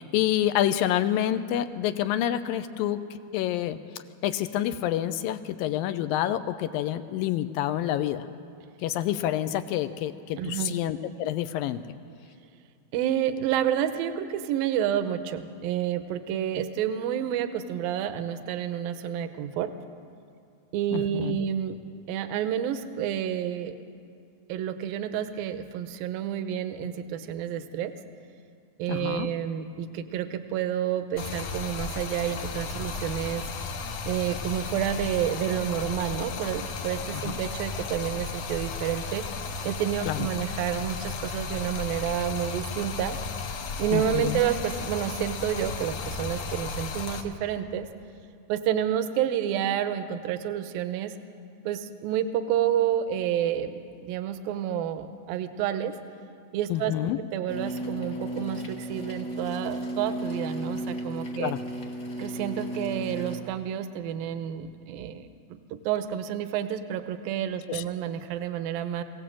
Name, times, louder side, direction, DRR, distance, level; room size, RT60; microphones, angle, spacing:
voice 1, 0.0-3.8 4.2-8.3 8.8-11.8 20.9-21.4 28.9-29.3 37.1-37.4 40.1-40.3 43.9-44.4 56.7-57.2 61.4-61.6 67.7-67.8, left 12 dB, 80° left, 11 dB, 2.3 m, -28 dB
voice 2, 10.4-10.8 12.9-19.7 20.7-21.8 22.1-23.8 24.5-27.9 28.8-33.4 34.1-39.2 39.6-43.2 43.8-47.9 48.5-51.1 51.6-56.0 56.5-56.9 57.3-61.5 62.2-65.3 65.7-69.0, right 10 dB, 75° right, 10 dB, 2.5 m, -29 dB
Stream, 31.2-47.2, left 4 dB, 60° left, 1.8 m, -34 dB
sound 1, 57.5-63.4, right 1 dB, 45° left, 0.9 m, -34 dB
23.0 x 17.5 x 7.7 m, 2.3 s
omnidirectional pair, 4.4 m